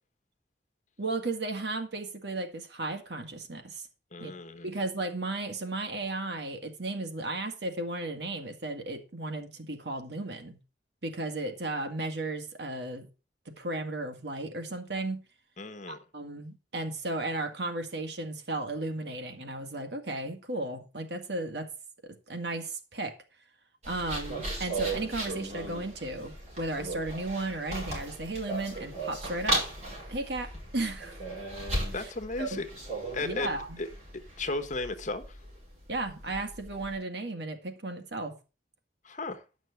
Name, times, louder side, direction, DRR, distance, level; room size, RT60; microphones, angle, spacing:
voice 1, 1.0-3.8 4.2-4.3 4.6-10.6 11.0-13.1 13.5-15.2 15.9-21.7 22.0-23.2 23.9-29.7 30.1-31.2 31.9-32.0 32.4-32.6 33.2-33.8 35.9-38.4, right 2 dB, 70° right, 2.0 m, -35 dB
voice 2, 4.1-4.7 15.6-16.0 31.9-32.7 33.1-33.9 34.4-35.4 39.0-39.4, left 3 dB, 45° left, 1.3 m, -35 dB
sound 1, 23.8-37.0, right 2 dB, 40° right, 6.5 m, -37 dB
11.0 x 6.2 x 5.8 m
head